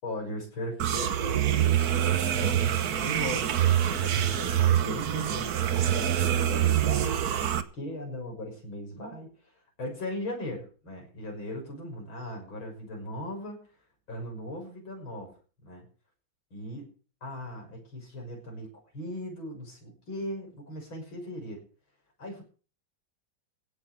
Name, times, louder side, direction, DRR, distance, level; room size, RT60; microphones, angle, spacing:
voice 1, 0.0-1.9 2.3-9.5 9.8-13.7 14.1-15.4 15.6-15.9 16.5-16.9 17.2-18.7 18.9-21.6 22.2-22.4, left 1 dB, 80° left, 1 dB, 7.0 m, -38 dB
sound 1, 0.8-7.6, right 10 dB, 55° right, 1.4 m, -25 dB
16.5 x 6.5 x 8.5 m, 0.38 s
omnidirectional pair, 2.2 m